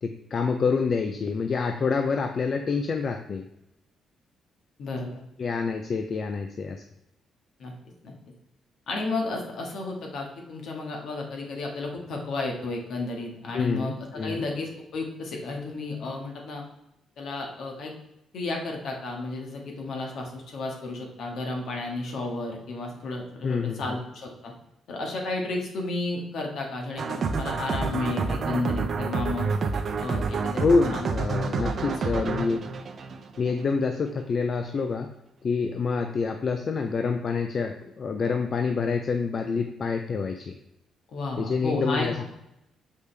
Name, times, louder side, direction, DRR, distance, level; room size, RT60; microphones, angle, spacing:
voice 1, 0.0-3.4 5.4-6.8 13.5-14.4 23.4-24.0 30.6-32.7 33.4-35.1 35.4-40.6 41.4-42.4, left 4 dB, 50° left, 5 dB, 0.5 m, -27 dB
voice 2, 4.8-5.2 7.6-7.7 8.0-8.1 8.9-16.6 17.2-17.9 18.3-24.5 24.9-29.5 30.0-30.7 30.9-31.8 32.1-32.3 41.1-42.4, left 2 dB, 65° left, 1 dB, 1.7 m, -32 dB
sound 1, 27.0-33.7, right 4 dB, 50° right, 0.7 m, -29 dB
6.6 x 5.2 x 3.4 m, 0.85 s
cardioid pair, 90°, 0 cm